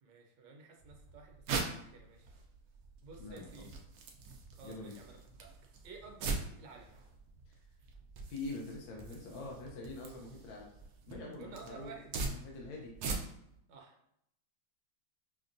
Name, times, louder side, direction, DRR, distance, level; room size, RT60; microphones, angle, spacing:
voice 1, 0.0-2.3 3.0-3.7 4.5-5.5 5.8-6.9 11.4-12.1 13.7-14.1, right 4 dB, 70° right, 1 dB, 1.3 m, -53 dB
sound 1, 0.8-13.6, right 3 dB, 85° right, 0.8 m, -43 dB
voice 2, 3.2-3.7 4.6-5.0 8.3-10.7 11.1-11.9 12.3-12.9, left 3 dB, 75° left, -1 dB, 1.4 m, -44 dB
5.8 x 2.2 x 2.5 m, 0.77 s
omnidirectional pair, 2.2 m